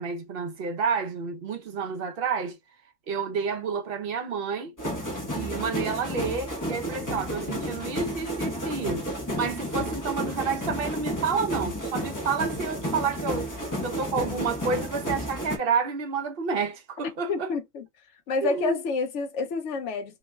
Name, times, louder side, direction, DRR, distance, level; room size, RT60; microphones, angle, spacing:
voice 1, 0.0-2.6 3.1-4.7 5.3-9.1 9.4-17.5 18.4-18.8, right 5 dB, 55° right, 0.8 m, -30 dB
sound 1, 4.8-15.6, equal, 20° left, 0.6 m, -31 dB
voice 2, 17.3-17.8 18.3-20.2, left 4 dB, 70° left, 1.0 m, -28 dB
3.0 x 2.1 x 3.3 m
omnidirectional pair, 1.3 m